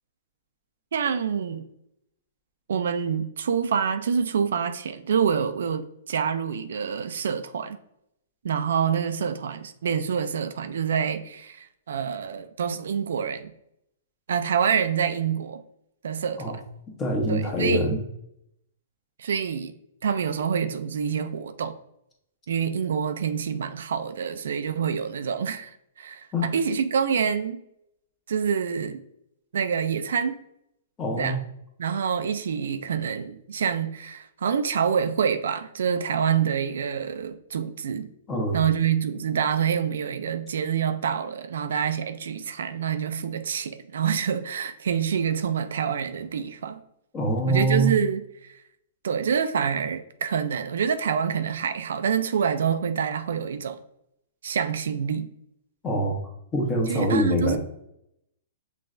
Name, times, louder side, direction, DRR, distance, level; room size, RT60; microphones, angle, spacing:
voice 1, 0.9-1.7 2.7-7.8 8.4-13.5 14.3-15.6 16.0-16.6 17.3-18.0 19.2-19.7 20.0-21.8 22.5-27.6 28.3-29.0 29.5-30.3 31.2-31.4 31.8-38.1 38.5-46.8 47.5-48.6 49.0-53.8 54.4-55.3 56.9-57.6, right 7 dB, 75° right, 0.4 m, -26 dB
voice 2, 17.0-18.0 26.3-26.5 31.0-31.4 38.3-38.6 47.1-47.9 55.8-56.2 56.5-57.6, equal, 25° left, 1.2 m, -24 dB
6.0 x 3.2 x 2.5 m
hypercardioid pair, 125°, 0 cm